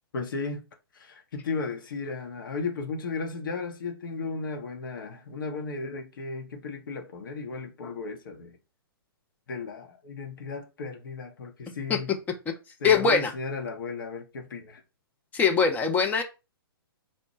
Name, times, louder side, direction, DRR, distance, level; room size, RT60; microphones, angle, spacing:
voice 1, 0.1-0.6 0.9-8.6 9.5-12.1 12.8-14.8, left 4 dB, 60° left, 0.8 m, -35 dB
voice 2, 12.8-13.3 15.3-16.2, left 5 dB, 10° left, 0.5 m, -21 dB
4.2 x 2.1 x 2.9 m
figure-of-eight pair, 120°, 13 cm